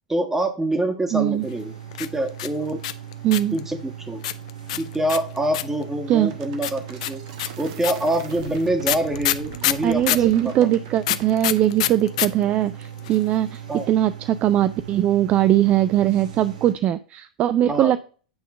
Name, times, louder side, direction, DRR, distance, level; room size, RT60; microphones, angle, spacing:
voice 1, 0.1-1.7 2.0-2.8 3.5-4.2 4.8-7.2 7.6-10.5 13.7-13.9 17.7-17.9, right 1 dB, 10° right, 5 dB, 1.6 m, -25 dB
voice 2, 1.1-1.5 3.2-3.6 6.1-6.3 9.8-13.6 13.9-18.0, right 12 dB, 35° right, 13 dB, 0.4 m, -20 dB
sound 1, 1.4-16.7, right 10 dB, 70° right, 1.7 m, -39 dB
sound 2, 1.9-3.6 4.2-5.8 6.6-10.3 11.0-12.3 12.5-12.6 12.8-13.3, left 14 dB, 60° left, 0.5 m, -25 dB
sound 3, 6.2-11.7, right 8 dB, 55° right, 1.3 m, -41 dB
8.7 x 3.6 x 5.4 m, 0.39 s
figure-of-eight pair, 90°, 4 cm